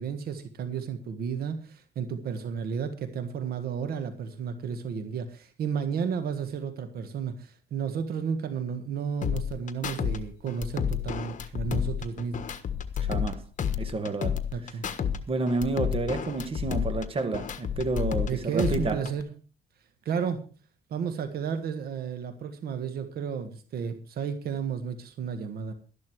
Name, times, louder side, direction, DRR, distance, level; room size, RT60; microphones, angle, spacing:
voice 1, 0.0-12.5 14.5-14.9 18.3-19.3 20.0-20.4 20.9-25.7, right 6 dB, 65° right, 1.6 m, -32 dB
sound 1, 9.2-10.2 10.5-13.3 13.6-15.2 15.5-18.3 18.6-19.2, left 8 dB, 50° left, 1.4 m, -30 dB
voice 2, 13.0-13.4 13.8-14.8 15.3-19.1, right 3 dB, 35° right, 2.1 m, -30 dB
13.0 x 11.5 x 4.8 m
cardioid pair, 105°, 17 cm